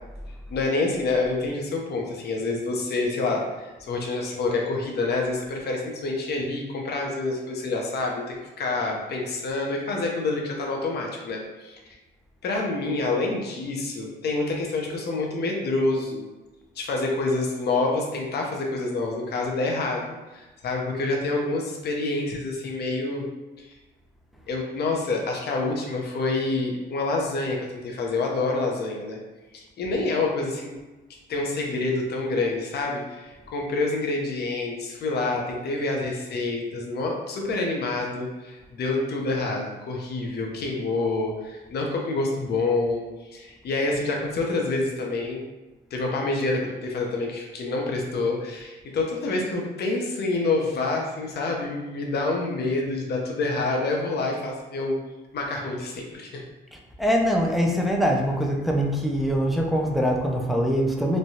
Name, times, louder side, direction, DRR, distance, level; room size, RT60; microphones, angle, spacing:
voice 1, 0.5-11.8 12.4-16.3 16.8-20.0 20.3-23.3 23.6-23.7 24.5-29.2 29.5-30.7 31.3-45.4 45.9-55.0 55.3-56.4, left 3 dB, 55° left, 0 dB, 0.6 m, -27 dB
voice 2, 56.7-61.2, equal, ahead, 0 dB, 0.5 m, -23 dB
3.1 x 2.2 x 2.7 m, 1.1 s
cardioid pair, 90°, 20 cm